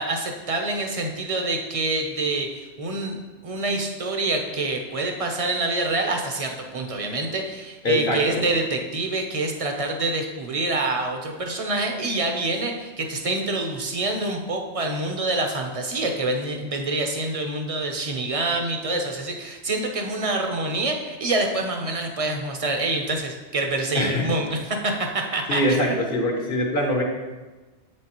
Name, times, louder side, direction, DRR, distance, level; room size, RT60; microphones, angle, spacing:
voice 1, 0.0-3.2 3.4-26.0, right 2 dB, 35° right, 3 dB, 0.7 m, -26 dB
voice 2, 7.8-8.4 23.9-24.3 25.5-27.0, left 1 dB, 55° left, 1 dB, 1.0 m, -23 dB
7.4 x 6.4 x 3.0 m, 1.2 s
omnidirectional pair, 1.1 m